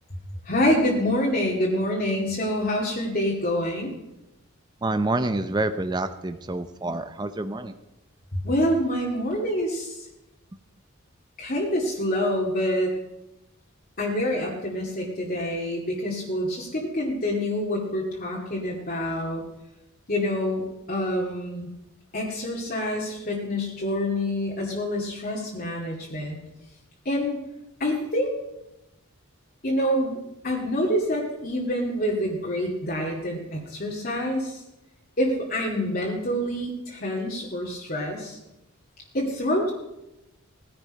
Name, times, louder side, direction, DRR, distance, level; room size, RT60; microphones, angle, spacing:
voice 1, 0.5-3.9 8.3-10.0 11.4-12.9 14.0-19.4 20.1-21.7 22.1-26.4 27.1-27.4 27.8-28.3 29.6-30.2 30.4-34.6 35.2-38.4 39.1-39.7, left 1 dB, 40° left, -3 dB, 2.2 m, -26 dB
voice 2, 4.8-7.7, right 2 dB, 20° right, 10 dB, 0.6 m, -27 dB
18.5 x 10.5 x 5.3 m, 0.93 s
head